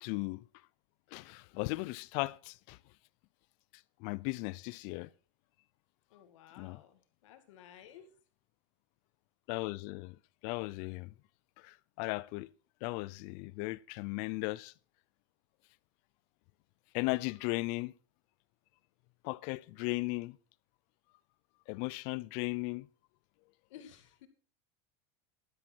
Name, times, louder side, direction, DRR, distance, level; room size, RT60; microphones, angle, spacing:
voice 1, 0.0-0.4 1.1-2.8 4.0-5.1 6.6-6.8 9.5-10.2 10.4-11.1 11.6-12.5 12.8-14.7 16.9-17.9 19.2-20.4 21.7-22.9, left 24 dB, 55° left, 0.5 m, -36 dB
voice 2, 6.1-8.1 23.7-24.3, left 10 dB, 80° left, 2.2 m, -55 dB
11.5 x 10.5 x 4.5 m
supercardioid pair, 145°, 16 cm